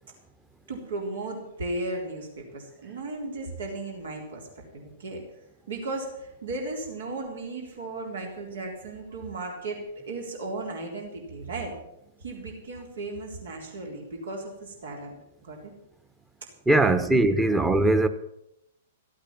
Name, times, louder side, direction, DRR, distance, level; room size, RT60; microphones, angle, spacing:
voice 1, 0.7-2.3 2.5-5.2 5.7-9.8 10.1-11.7 12.2-15.2 15.4-15.7 16.9-17.6, right 2 dB, 75° right, 3.7 m, -35 dB
voice 2, 16.7-18.1, right 2 dB, 10° right, 1.1 m, -20 dB
15.0 x 8.8 x 7.3 m
hypercardioid pair, 115°, 0 cm